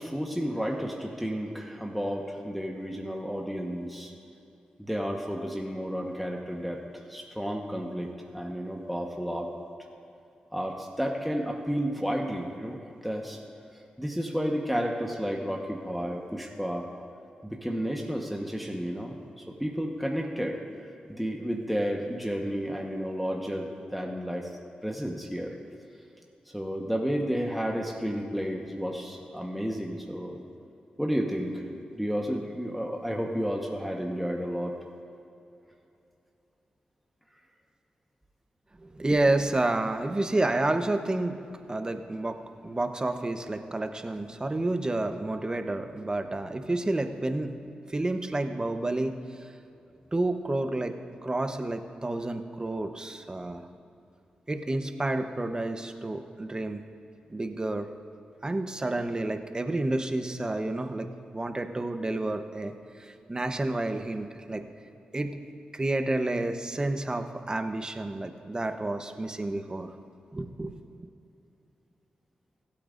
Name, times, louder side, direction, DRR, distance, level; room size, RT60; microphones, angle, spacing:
voice 1, 0.0-4.1 4.8-9.5 10.5-13.4 14.0-16.9 17.4-20.6 21.1-24.5 24.8-25.5 26.5-30.4 31.0-31.6 31.9-34.8, equal, ahead, 0 dB, 1.2 m, -32 dB
voice 2, 38.8-41.4 41.7-47.6 47.9-49.5 50.1-51.0 51.2-53.7 54.5-56.8 57.3-57.9 58.4-64.6 65.1-65.4 65.7-69.9 70.3-71.1, right 2 dB, 30° right, 7 dB, 0.9 m, -30 dB
24.5 x 8.7 x 2.6 m, 2.7 s
cardioid pair, 50°, 3 cm